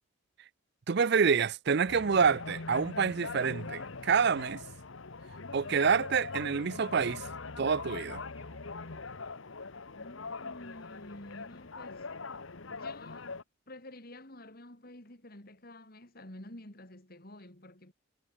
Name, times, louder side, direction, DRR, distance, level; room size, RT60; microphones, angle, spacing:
voice 1, 0.9-4.6 5.5-7.2 7.6-8.2, right 6 dB, 50° right, 0.5 m, -27 dB
sound 1, 1.9-13.4, left 4 dB, 65° left, 1.2 m, -42 dB
sound 2, 8.3-9.4, equal, 10° right, 4.8 m, -63 dB
voice 2, 10.0-12.1 12.7-13.3 13.7-17.9, left 1 dB, 45° left, 3.0 m, -50 dB
head